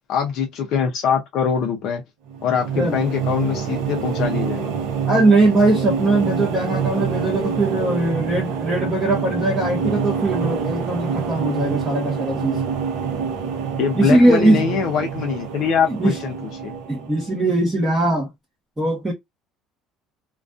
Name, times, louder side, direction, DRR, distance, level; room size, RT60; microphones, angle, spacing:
voice 1, 0.1-2.0 2.4-4.8 13.8-16.3 16.6-16.8, left 7 dB, 45° left, 0.5 m, -23 dB
sound 1, 2.3-17.6, right 6 dB, 70° right, 0.7 m, -26 dB
voice 2, 2.7-3.1 5.1-12.6 14.0-14.6 15.9-16.2 16.9-18.3 18.8-19.1, right 2 dB, 10° right, 0.7 m, -20 dB
2.3 x 2.2 x 2.4 m
cardioid pair, 175°, 0 cm